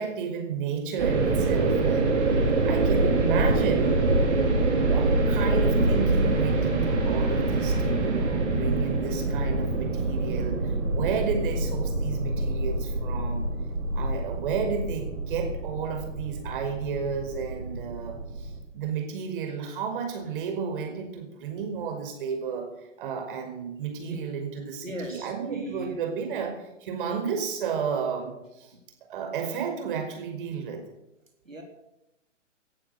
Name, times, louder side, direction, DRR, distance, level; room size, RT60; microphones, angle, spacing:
voice 1, 0.0-2.2 2.6-4.0 4.6-13.5 13.9-28.7 29.1-30.8, right 6 dB, 45° right, 4 dB, 5.1 m, -32 dB
sound 1, 1.0-18.6, right 2 dB, 60° right, 4.8 m, -25 dB
voice 2, 24.8-26.0 31.5-31.6, right 1 dB, 85° right, 2 dB, 3.7 m, -37 dB
18.5 x 11.5 x 6.7 m, 0.89 s
figure-of-eight pair, 130°, 38 cm